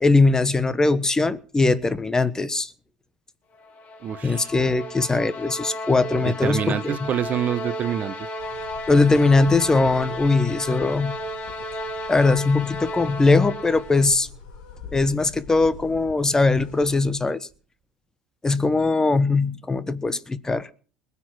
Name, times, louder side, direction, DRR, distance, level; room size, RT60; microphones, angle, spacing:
voice 1, 0.0-2.7 4.2-7.0 8.9-11.2 12.1-14.3 14.9-17.5 18.4-20.7, left 3 dB, 15° left, 1.1 m, -20 dB
sound 1, 3.6-14.2, left 1 dB, 45° left, 3.6 m, -34 dB
voice 2, 4.0-4.5 6.2-8.1, right 9 dB, 40° right, 1.0 m, -26 dB
sound 2, 8.4-17.1, left 4 dB, 75° left, 5.8 m, -44 dB
21.0 x 8.5 x 6.0 m
hypercardioid pair, 80°, 4 cm